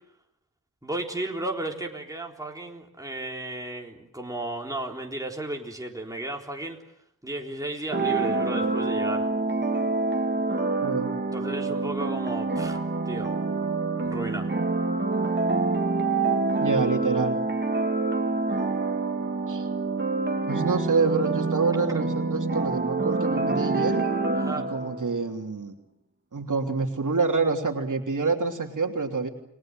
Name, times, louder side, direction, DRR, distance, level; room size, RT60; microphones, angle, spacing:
voice 1, 0.8-6.8 7.2-9.3 11.3-13.6 14.0-14.5 24.3-24.7, right 2 dB, 10° right, 0 dB, 3.8 m, -34 dB
sound 1, 7.9-25.1, right 3 dB, 30° right, 2.6 m, -26 dB
voice 2, 10.8-11.1 16.6-17.4 19.5-19.7 20.5-24.1 24.6-25.7 26.3-29.3, right 4 dB, 60° right, 2 dB, 3.2 m, -27 dB
30.0 x 20.5 x 7.7 m, 0.78 s
wide cardioid pair, 85°, 35 cm